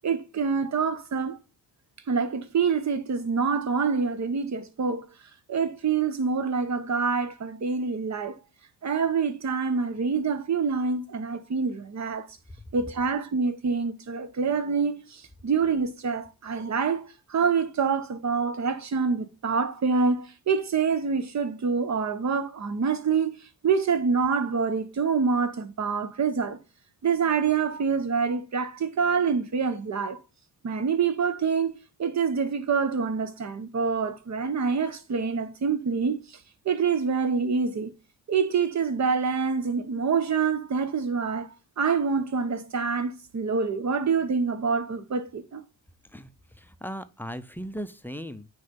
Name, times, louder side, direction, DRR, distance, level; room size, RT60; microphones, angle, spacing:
voice 1, 0.0-1.4 2.1-5.1 5.5-8.4 8.8-12.3 12.7-17.0 17.3-23.4 23.6-26.6 27.0-30.2 30.6-36.2 36.6-37.9 38.3-41.5 41.8-45.6, right 5 dB, 50° right, 1.1 m, -26 dB
voice 2, 46.6-48.5, equal, 5° left, 0.6 m, -37 dB
9.2 x 3.3 x 5.3 m
cardioid pair, 100°, 37 cm